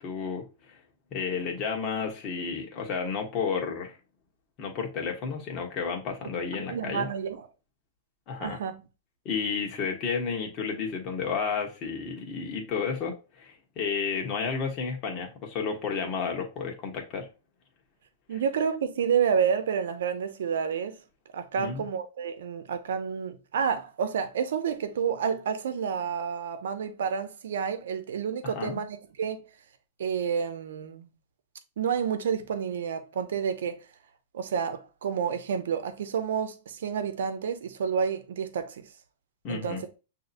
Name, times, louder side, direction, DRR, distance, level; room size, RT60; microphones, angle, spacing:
voice 1, 0.0-0.8 1.1-4.0 4.6-7.1 8.3-8.6 9.2-17.3 21.6-21.9 28.4-28.8 39.4-39.8, left 5 dB, 35° left, 1.2 m, -32 dB
voice 2, 6.5-7.5 8.4-8.8 18.3-21.0 21.3-29.4 30.0-31.1 31.8-33.8 34.3-38.9 39.5-39.9, right 7 dB, 80° right, 0.8 m, -29 dB
6.4 x 2.8 x 2.6 m
hypercardioid pair, 145°, 0 cm